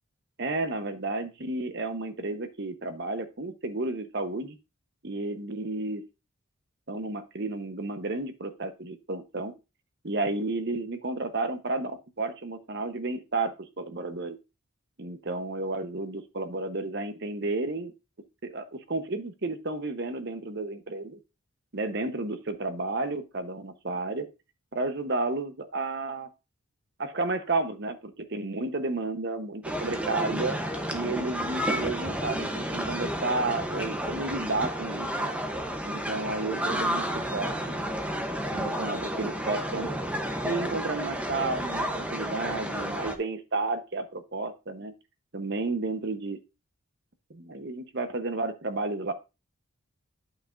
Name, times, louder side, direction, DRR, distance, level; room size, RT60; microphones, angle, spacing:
voice 1, 0.4-4.6 5.0-6.0 6.9-9.5 10.0-11.9 12.2-14.4 15.0-17.9 18.4-21.2 21.7-24.3 24.7-26.3 27.0-30.6 30.9-35.1 35.8-37.7 38.5-39.9 40.4-44.9 45.3-46.4 47.3-49.1, right 2 dB, 50° right, 9 dB, 0.9 m, -32 dB
sound 1, 29.6-43.1, equal, 5° right, 0.7 m, -31 dB
11.5 x 5.8 x 2.5 m, 0.27 s
head